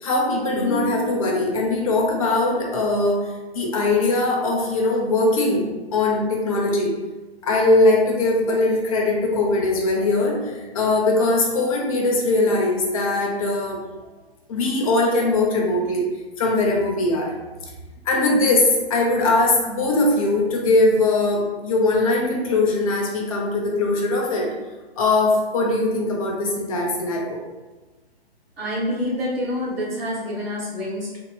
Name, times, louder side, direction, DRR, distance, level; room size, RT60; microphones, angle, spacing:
voice 1, 0.0-3.3 3.5-5.6 5.9-6.9 7.4-13.9 14.5-16.0 16.4-17.3 18.1-24.5 25.0-27.4, left 2 dB, 35° left, -1 dB, 0.6 m, -20 dB
voice 2, 28.6-31.2, left 1 dB, 65° right, -4 dB, 1.3 m, -27 dB
3.5 x 2.7 x 2.3 m, 1.2 s
figure-of-eight pair, 130°, 32 cm